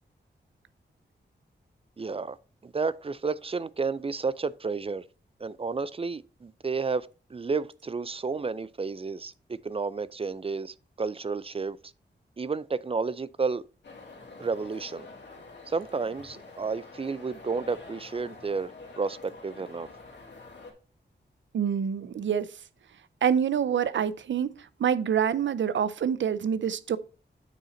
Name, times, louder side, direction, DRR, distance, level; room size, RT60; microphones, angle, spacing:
voice 1, 2.0-2.4 2.6-5.0 5.4-11.8 12.4-13.6 14.4-15.1 15.7-18.7 19.0-19.9, right 4 dB, 30° right, 0.4 m, -31 dB
sound 1, 13.8-20.7, left 3 dB, 70° left, 2.2 m, -47 dB
voice 2, 21.5-22.5 23.2-24.5 24.8-27.0, right 8 dB, 85° right, 0.5 m, -26 dB
9.1 x 4.2 x 3.9 m
wide cardioid pair, 85°, 19 cm